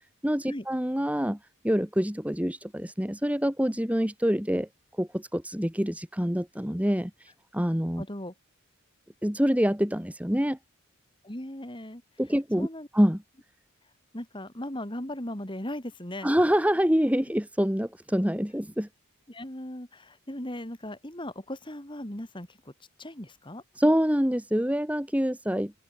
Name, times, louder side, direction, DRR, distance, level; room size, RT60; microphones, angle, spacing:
voice 1, 0.2-1.4 1.6-4.7 5.0-7.1 7.5-8.0 9.2-10.6 12.2-12.7 12.9-13.2 16.2-18.9 23.8-25.7, equal, 5° right, 1.7 m, -26 dB
voice 2, 8.0-8.3 11.2-12.0 12.6-12.9 14.1-16.3 19.3-22.7 23.0-23.6, left 1 dB, 20° left, 2.6 m, -38 dB
open air
head